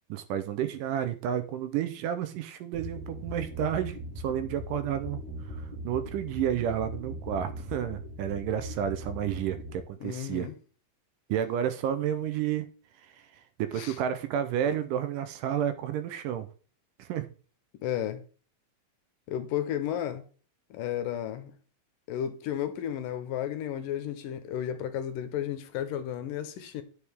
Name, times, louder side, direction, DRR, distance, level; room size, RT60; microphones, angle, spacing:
voice 1, 0.1-5.2 5.6-10.5 11.3-12.7 13.1-13.2 13.6-16.5 17.0-17.3, right 9 dB, 75° right, 2.3 m, -31 dB
sound 1, 2.7-9.8, equal, 60° right, 3.2 m, -40 dB
voice 2, 10.0-10.5 13.8-14.0 17.8-18.2 19.3-20.2 20.7-21.5 22.1-26.8, left 10 dB, 75° left, 2.5 m, -33 dB
10.0 x 6.4 x 3.5 m
omnidirectional pair, 4.0 m